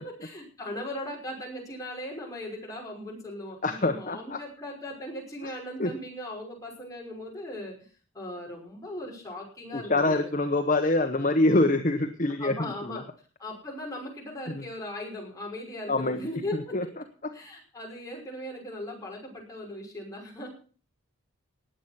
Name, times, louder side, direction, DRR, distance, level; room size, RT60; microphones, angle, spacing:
voice 1, 0.0-7.9 8.1-10.3 12.4-13.0 13.4-16.8 17.3-20.5, left 1 dB, 15° left, -2 dB, 5.5 m, -38 dB
voice 2, 3.6-4.4 5.8-5.9 9.7-13.0 14.5-14.6 15.9-16.3 16.7-16.8, left 2 dB, 35° left, 6 dB, 1.0 m, -25 dB
19.5 x 8.1 x 5.9 m, 0.41 s
head